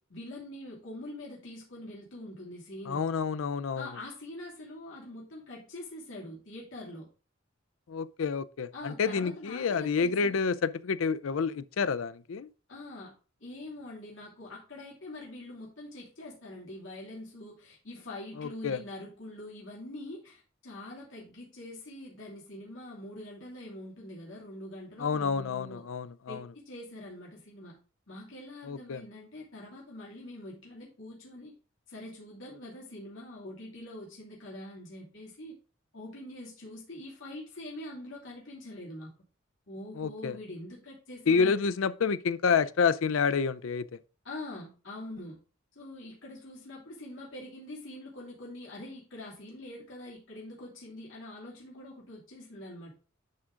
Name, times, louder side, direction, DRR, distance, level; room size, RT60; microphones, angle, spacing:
voice 1, 0.0-3.1 3.7-7.1 8.7-10.4 12.7-13.1 13.4-25.9 26.3-27.8 28.1-31.5 31.9-35.5 35.9-39.1 39.7-41.6 44.2-45.4 45.7-52.9, left 1 dB, 70° left, 2.7 m, -44 dB
voice 2, 2.9-3.9 7.9-12.5 18.4-18.8 25.0-26.4 28.7-29.0 40.0-40.3 41.3-43.8, left 5 dB, 90° left, 0.5 m, -28 dB
10.5 x 3.7 x 3.7 m
head